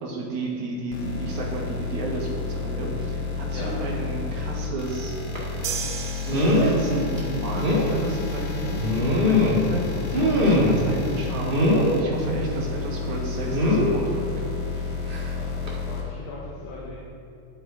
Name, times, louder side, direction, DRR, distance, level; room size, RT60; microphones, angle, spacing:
voice 1, 0.0-5.4 6.2-14.6, right 2 dB, 55° right, -3 dB, 2.9 m, -32 dB
sound 1, 0.9-16.0, left 4 dB, 55° left, 2.6 m, -31 dB
sound 2, 5.3-5.5 6.3-6.8 7.2-7.3 7.6-7.9 8.8-9.7 10.1-10.9 11.5-11.9 13.5-13.9 15.1-15.3 15.7-15.8, left 1 dB, 40° right, 0.7 m, -21 dB
sound 3, 5.6-7.2, right 7 dB, 75° right, 1.6 m, -34 dB
voice 2, 15.3-17.0, left 3 dB, 75° left, -5 dB, 3.2 m, -39 dB
11.5 x 8.9 x 5.1 m, 2.6 s
omnidirectional pair, 4.4 m